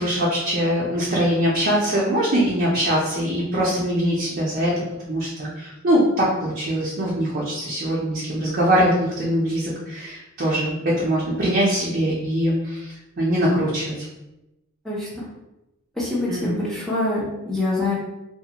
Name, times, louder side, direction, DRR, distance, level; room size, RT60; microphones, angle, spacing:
voice 1, 0.0-4.7 5.0-14.1 16.3-16.6, equal, 45° right, -5 dB, 0.5 m, -22 dB
voice 2, 14.8-15.2 16.0-18.0, left 2 dB, ahead, -6 dB, 0.6 m, -25 dB
2.4 x 2.1 x 2.8 m, 0.95 s
head